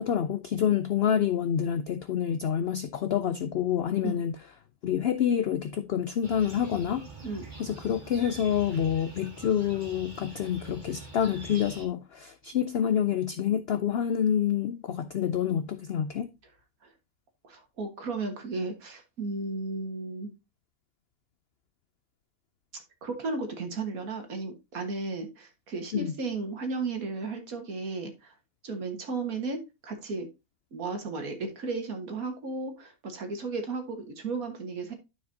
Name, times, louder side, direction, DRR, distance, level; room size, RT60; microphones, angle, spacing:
voice 1, 0.0-4.4 4.8-7.0 7.6-16.3 25.9-26.1, left 9 dB, 70° left, 0.5 m, -27 dB
sound 1, 6.2-11.9, right 3 dB, 30° right, 2.0 m, -45 dB
voice 2, 17.4-20.3 23.0-28.3 28.6-30.3 30.7-34.9, right 3 dB, 70° right, 1.9 m, -34 dB
12.0 x 4.6 x 2.7 m
omnidirectional pair, 1.6 m